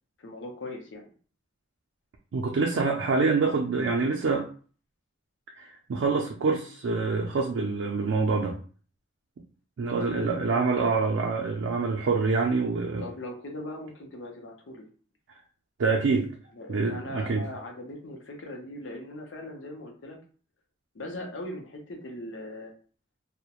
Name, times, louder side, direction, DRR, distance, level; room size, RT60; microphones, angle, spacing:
voice 1, 0.2-1.1 9.9-10.7 13.0-14.9 16.5-20.2 20.9-22.7, left 1 dB, 80° left, 2 dB, 0.6 m, -39 dB
voice 2, 2.3-4.5 5.6-8.6 9.8-13.1 15.8-16.3 16.7-17.4, right 4 dB, 80° right, 0 dB, 0.4 m, -26 dB
2.3 x 2.1 x 2.8 m, 0.41 s
head